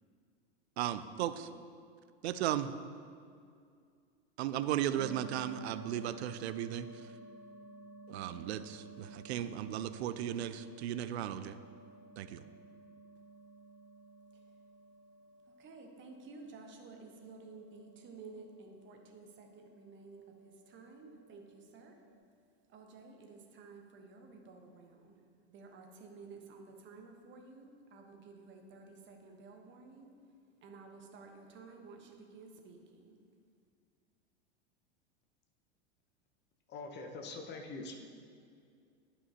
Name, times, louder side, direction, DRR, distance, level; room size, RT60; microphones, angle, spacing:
voice 1, 0.8-1.5 2.2-2.7 4.4-6.9 8.1-11.6 12.2-12.4, right 11 dB, 70° right, 12 dB, 0.5 m, -36 dB
sound 1, 4.9-22.2, right 2 dB, 85° left, 2.0 m, -55 dB
voice 2, 15.4-22.1 22.7-30.1 30.6-33.2, right 4 dB, 35° right, 3 dB, 1.2 m, -53 dB
voice 3, 36.7-38.0, left 3 dB, 30° left, 4 dB, 1.0 m, -43 dB
11.5 x 5.5 x 2.8 m, 2.3 s
hypercardioid pair, 100°, 33 cm